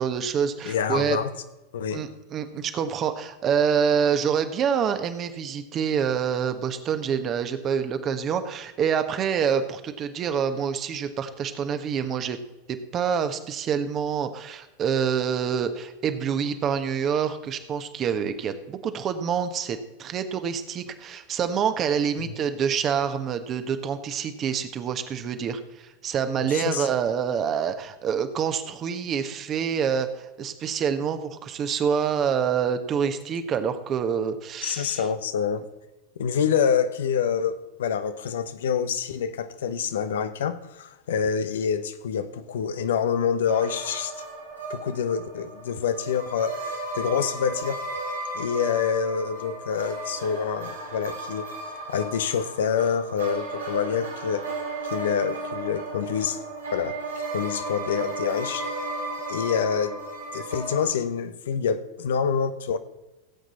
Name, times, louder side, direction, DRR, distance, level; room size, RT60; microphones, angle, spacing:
voice 1, 0.0-1.2 1.9-12.4 12.7-35.0, right 7 dB, 35° right, 1.3 m, -26 dB
voice 2, 0.6-1.3 1.7-2.1 22.2-22.3 26.4-26.9 34.6-35.7 36.2-44.1 44.7-47.8 48.3-51.5 51.9-54.5 54.8-56.4 56.7-57.0 57.3-58.7 59.3-60.0 60.3-62.8, left 7 dB, 70° left, 0.9 m, -27 dB
sound 1, 43.5-60.9, right 2 dB, 85° right, 2.9 m, -34 dB
17.0 x 8.0 x 4.3 m
figure-of-eight pair, 90°, 0 cm